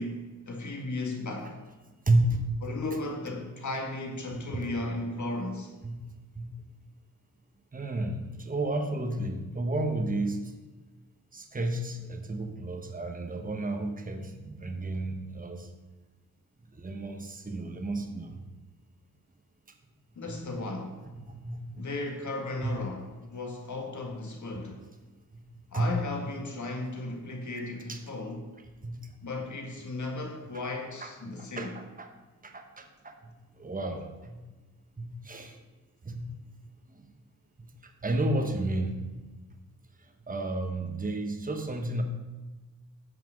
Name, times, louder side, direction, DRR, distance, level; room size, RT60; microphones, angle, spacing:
voice 1, 0.0-1.6 2.6-5.7 20.2-20.9 21.8-24.8 25.7-28.4 29.2-31.7, left 2 dB, 60° left, 2 dB, 1.8 m, -35 dB
voice 2, 2.1-2.6 4.3-4.7 5.8-6.5 7.7-10.5 11.3-15.7 16.8-18.4 20.3-20.4 21.3-21.8 22.6-22.7 25.7-25.9 27.9-28.0 28.8-29.0 31.0-31.1 31.4-32.1 32.4-33.1 33.6-34.4 35.0-35.6 36.0-36.2 37.0-37.1 38.0-39.0 40.3-42.0, right 2 dB, 25° right, 5 dB, 1.1 m, -31 dB
9.9 x 5.9 x 6.3 m, 1.2 s
wide cardioid pair, 110°, 33 cm